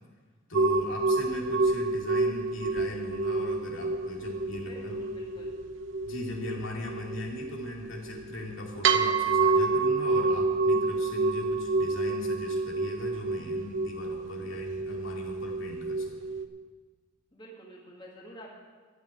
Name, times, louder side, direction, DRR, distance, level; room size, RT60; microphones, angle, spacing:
voice 1, 0.5-5.0 6.0-16.1, left 1 dB, 75° left, -1 dB, 2.4 m, -39 dB
sound 1, 0.5-16.4, right 3 dB, 70° right, 0.8 m, -28 dB
voice 2, 4.7-5.6 17.3-18.5, right 1 dB, 25° left, -3 dB, 2.0 m, -48 dB
13.5 x 6.0 x 9.3 m, 1.5 s
head